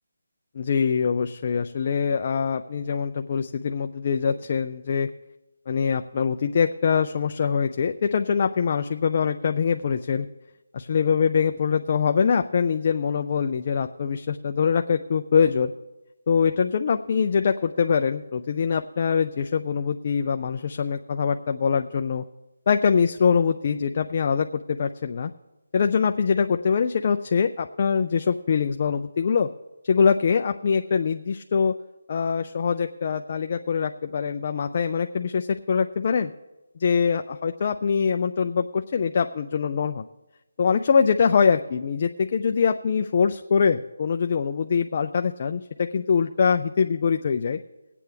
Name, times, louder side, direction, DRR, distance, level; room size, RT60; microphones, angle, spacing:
voice 1, 0.6-5.1 5.7-10.3 10.7-15.7 16.3-22.2 22.7-25.3 25.7-29.5 29.8-31.7 32.1-36.3 36.8-40.1 40.6-47.6, left 6 dB, 35° left, 6 dB, 0.4 m, -23 dB
21.5 x 8.4 x 3.5 m, 1.0 s
figure-of-eight pair, 170°, 0 cm